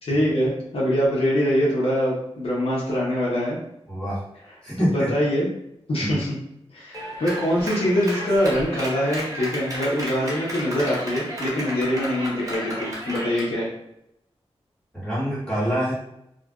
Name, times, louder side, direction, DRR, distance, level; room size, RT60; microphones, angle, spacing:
voice 1, 0.0-3.6 4.9-5.5 5.9-6.4 6.7-13.7, equal, 60° left, -6 dB, 0.7 m, -23 dB
voice 2, 3.9-4.2 4.6-5.1 6.0-6.1 14.9-15.9, equal, 10° left, -9 dB, 1.5 m, -25 dB
Clapping, 6.9-13.5, equal, 30° right, 0.9 m, -33 dB
2.5 x 2.1 x 2.3 m, 0.80 s
wide cardioid pair, 65°, 11 cm